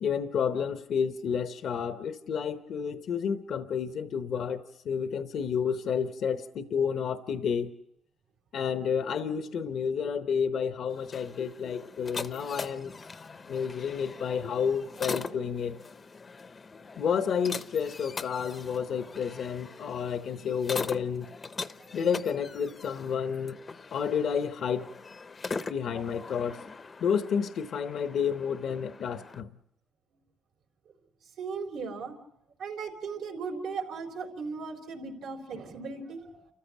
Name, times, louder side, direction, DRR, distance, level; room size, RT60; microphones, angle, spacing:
voice 1, 0.0-7.7 8.5-13.0 13.5-15.8 17.0-21.3 21.9-23.6 23.9-24.9 25.7-26.6 27.0-29.5, left 7 dB, 65° left, 0.9 m, -30 dB
sound 1, 10.9-29.4, left 4 dB, 35° left, 0.7 m, -41 dB
voice 2, 25.9-26.3 28.1-28.2 31.4-32.2 32.6-36.5, right 5 dB, 85° right, 3.9 m, -37 dB
29.5 x 14.5 x 7.2 m
cardioid pair, 90°, 0 cm